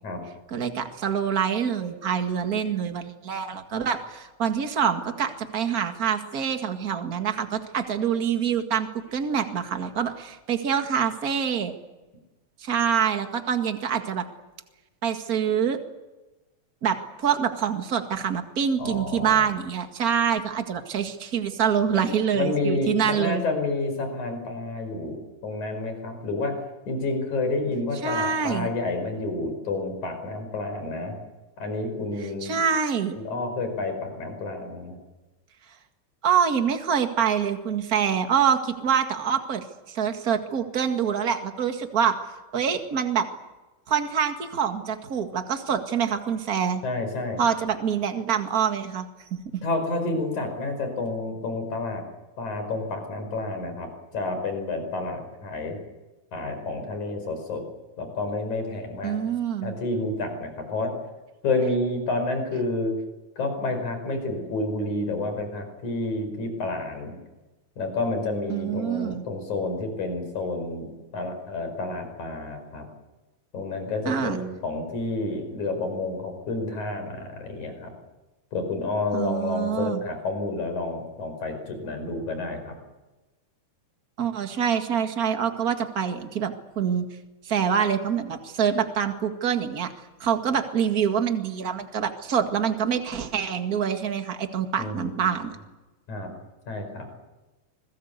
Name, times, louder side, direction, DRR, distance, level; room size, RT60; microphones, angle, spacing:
voice 1, 0.5-11.7 12.6-14.2 15.0-15.8 16.8-23.4 28.0-28.7 32.4-33.1 36.2-42.2 42.5-43.3 43.9-46.8 47.4-49.1 49.3-49.6 59.0-59.7 68.5-69.2 74.1-74.4 79.1-80.0 84.2-87.0 87.4-89.9 90.2-95.5, right 7 dB, 35° right, 6 dB, 1.9 m, -25 dB
voice 2, 18.8-19.4 21.9-22.1 22.3-26.5 26.9-31.1 31.6-32.6 33.1-35.0 46.8-47.4 49.6-52.0 52.4-55.8 56.3-57.6 58.0-59.2 59.6-60.9 61.4-62.9 63.4-67.2 67.8-70.9 71.1-72.8 73.5-77.9 78.5-82.7 94.8-95.4 96.1-96.3 96.7-97.1, left 2 dB, 65° left, 6 dB, 6.5 m, -29 dB
26.5 x 20.5 x 8.2 m, 1.1 s
omnidirectional pair, 3.6 m